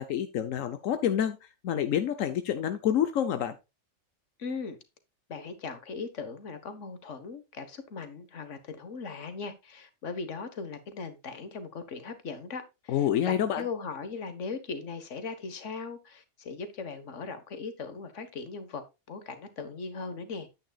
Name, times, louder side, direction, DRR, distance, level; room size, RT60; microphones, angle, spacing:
voice 1, 0.0-1.4 1.6-3.5 12.9-13.6, left 10 dB, 90° left, 1.2 m, -27 dB
voice 2, 4.4-4.8 5.3-20.5, left 4 dB, 70° left, 1.6 m, -39 dB
9.5 x 9.0 x 2.4 m
omnidirectional pair, 1.3 m